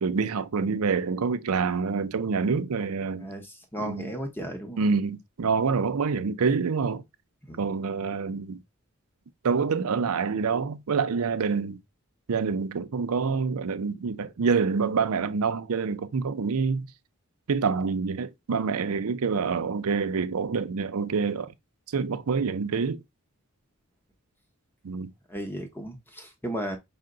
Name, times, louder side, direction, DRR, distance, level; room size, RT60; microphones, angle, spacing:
voice 1, 0.0-3.3 3.8-4.1 4.8-7.0 7.6-8.6 9.4-11.8 12.3-16.9 17.5-21.5 21.9-23.0 24.8-25.1, right 5 dB, 80° right, 0.5 m, -26 dB
voice 2, 3.2-4.8 7.5-7.7 25.3-26.8, equal, 10° left, 0.7 m, -35 dB
5.6 x 2.1 x 3.8 m
head